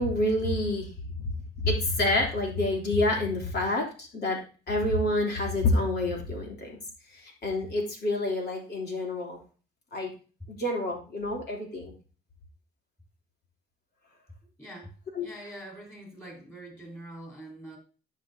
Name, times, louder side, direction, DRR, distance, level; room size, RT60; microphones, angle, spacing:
voice 1, 0.0-4.4 4.7-6.8 7.1-9.4 9.9-10.1 10.5-11.9 15.1-15.3, left 1 dB, 55° left, -1 dB, 3.0 m, -28 dB
voice 2, 14.6-17.8, right 1 dB, 10° left, -1 dB, 4.0 m, -44 dB
11.5 x 5.7 x 2.7 m, 0.36 s
cardioid pair, 90°, 20 cm